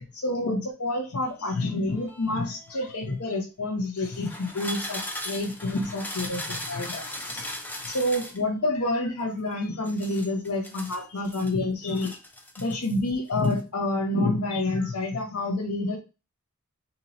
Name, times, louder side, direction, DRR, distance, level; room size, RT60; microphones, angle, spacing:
voice 1, 0.0-4.3 4.6-7.5 7.8-12.2 12.6-16.0, left 2 dB, 85° left, 2 dB, 0.7 m, -28 dB
sound 1, 1.2-3.1 4.0-8.4 9.9-11.5 11.9-13.0 13.3-13.6, left 1 dB, 10° left, 0.5 m, -38 dB
2.9 x 2.8 x 3.9 m, 0.30 s
head